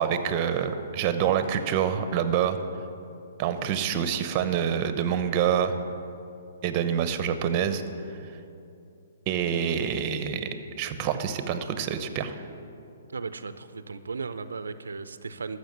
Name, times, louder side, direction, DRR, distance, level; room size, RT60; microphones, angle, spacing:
voice 1, 0.0-2.6 3.4-5.7 6.6-7.8 9.3-10.5 10.8-12.5, right 8 dB, 35° right, 10 dB, 0.9 m, -26 dB
voice 2, 13.1-15.6, right 4 dB, 85° right, 12 dB, 0.6 m, -36 dB
13.0 x 6.4 x 8.1 m, 2.6 s
hypercardioid pair, 135°, 0 cm